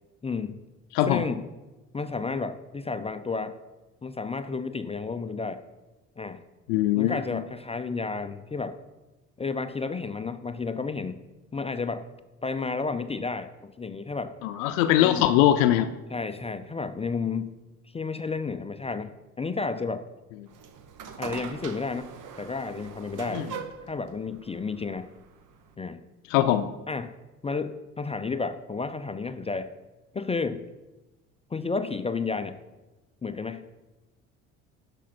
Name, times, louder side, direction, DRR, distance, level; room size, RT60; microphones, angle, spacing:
voice 1, 0.2-0.6 1.0-1.5 1.9-3.6 4.0-5.6 6.2-6.4 7.0-8.8 9.4-11.2 11.5-12.0 12.4-14.4 15.0-15.3 16.1-17.6 17.9-19.1 19.4-20.1 21.2-22.1 22.4-23.5 23.9-25.1 25.8-26.0 26.9-27.1 27.4-29.7 30.1-30.7 31.5-32.6 33.2-33.7, left 4 dB, 15° left, 10 dB, 0.5 m, -31 dB
voice 2, 6.7-7.4 14.4-15.9 23.3-23.4 26.3-26.7, left 12 dB, 75° left, 9 dB, 0.6 m, -21 dB
sound 1, 20.5-25.8, right 7 dB, 50° right, 1.1 m, -42 dB
12.0 x 5.3 x 4.4 m, 1.1 s
hypercardioid pair, 65°, 39 cm